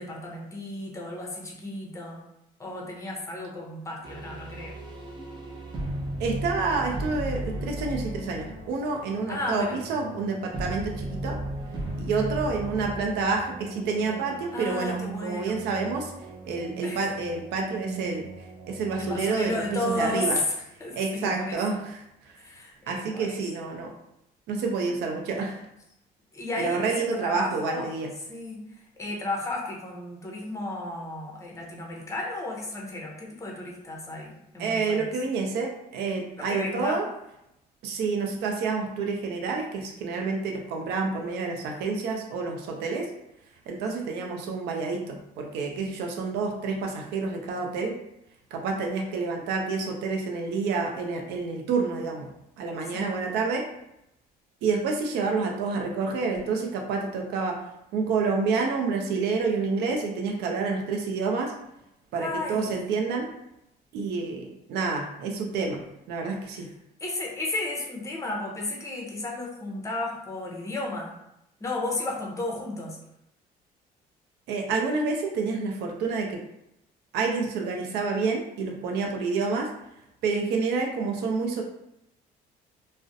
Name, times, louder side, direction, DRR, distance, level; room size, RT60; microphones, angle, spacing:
voice 1, 0.0-2.2 2.6-4.7 9.3-9.8 14.5-15.6 16.8-17.0 19.0-20.4 20.8-21.6 22.4-23.4 26.3-26.9 27.2-27.9 28.3-28.6 29.0-35.0 36.4-37.0 43.9-44.1 52.9-53.1 62.2-62.7 66.5-66.6 67.0-71.1 71.6-73.0, left 2 dB, 15° left, -1 dB, 0.6 m, -33 dB
sound 1, 4.0-20.0, right 1 dB, 25° right, 0.5 m, -36 dB
voice 2, 6.2-11.4 12.0-16.1 16.4-18.3 18.7-20.4 20.9-22.3 22.9-23.9 24.5-25.6 26.6-28.1 34.6-37.0 37.8-43.1 43.7-47.9 48.5-52.3 52.6-53.6 54.6-57.6 57.9-61.5 62.1-63.3 63.9-66.7 74.5-76.4 77.1-79.7 80.2-81.6, right 4 dB, 80° right, 2 dB, 0.4 m, -28 dB
2.4 x 2.0 x 2.6 m, 0.83 s
cardioid pair, 110°, 17 cm